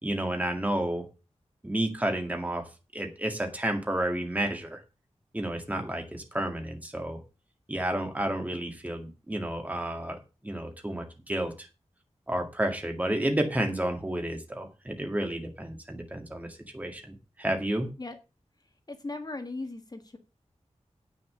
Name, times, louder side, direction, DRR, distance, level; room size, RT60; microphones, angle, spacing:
voice 1, 0.0-1.1 1.6-4.8 5.3-7.2 7.7-11.7 12.3-17.9, right 1 dB, 15° right, 4 dB, 2.0 m, -31 dB
voice 2, 18.9-20.2, left 2 dB, 35° left, 6 dB, 1.6 m, -37 dB
9.1 x 6.4 x 6.5 m, 0.31 s
wide cardioid pair, 90°, 12 cm